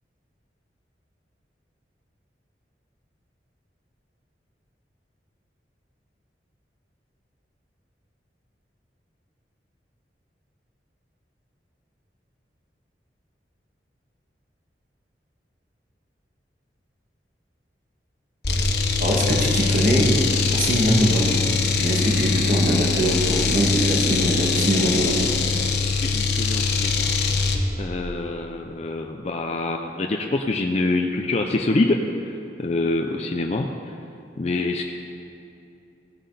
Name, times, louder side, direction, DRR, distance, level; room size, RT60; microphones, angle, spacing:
sound 1, 18.4-27.6, left 5 dB, 70° left, 1.0 m, -22 dB
voice 1, 19.0-20.1 20.5-21.4 21.7-25.3, right 1 dB, 50° right, -3 dB, 2.0 m, -22 dB
voice 2, 25.8-27.1 27.8-33.9 34.4-34.9, left 2 dB, 35° left, 2 dB, 0.5 m, -26 dB
16.5 x 7.6 x 4.1 m, 2.8 s
head